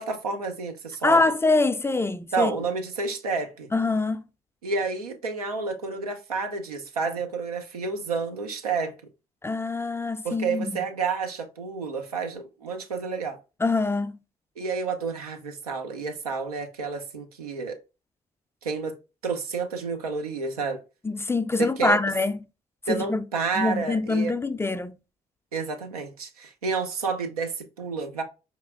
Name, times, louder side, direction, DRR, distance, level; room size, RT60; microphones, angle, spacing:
voice 1, 0.0-1.2 2.3-3.7 4.6-8.9 10.2-13.4 14.6-17.8 18.6-19.0 19.2-20.8 21.6-22.0 22.9-24.3 25.5-28.2, right 4 dB, 85° right, 0.5 m, -30 dB
voice 2, 1.0-2.5 3.7-4.2 9.4-10.7 13.6-14.2 21.0-22.4 22.9-23.2 23.6-24.9, left 3 dB, 15° left, 0.3 m, -24 dB
4.6 x 2.9 x 2.4 m
figure-of-eight pair, 40°, 19 cm